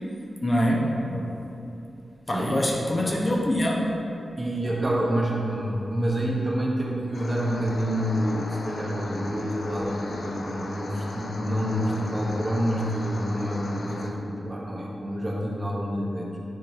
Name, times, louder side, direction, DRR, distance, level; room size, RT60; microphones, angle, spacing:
voice 1, 0.4-1.0 2.3-3.9, equal, 25° left, -2 dB, 0.8 m, -24 dB
voice 2, 4.4-16.3, equal, 25° right, -3 dB, 1.1 m, -28 dB
sound 1, 7.1-14.1, left 2 dB, 60° left, 0.6 m, -37 dB
9.5 x 3.8 x 4.5 m, 2.8 s
wide cardioid pair, 135°, 0 cm